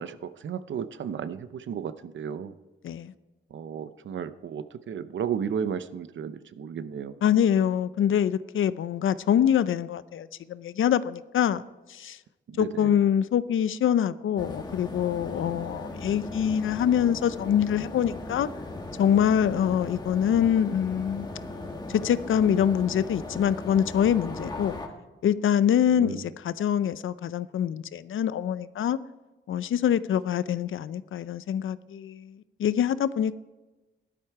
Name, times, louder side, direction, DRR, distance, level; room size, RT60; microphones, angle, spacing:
voice 1, 0.0-2.6 3.5-7.2 12.5-13.0 15.6-15.8 19.7-19.9 25.9-26.3, right 7 dB, 70° right, 13 dB, 0.7 m, -34 dB
voice 2, 7.2-11.6 11.9-12.2 12.6-18.5 19.0-21.3 21.9-24.8 25.2-29.0 29.5-33.4, left 9 dB, 85° left, 15 dB, 0.6 m, -25 dB
sound 1, 14.4-24.9, left 2 dB, 20° left, 1.6 m, -38 dB
17.5 x 11.5 x 4.7 m, 1.1 s
wide cardioid pair, 145°, 20 cm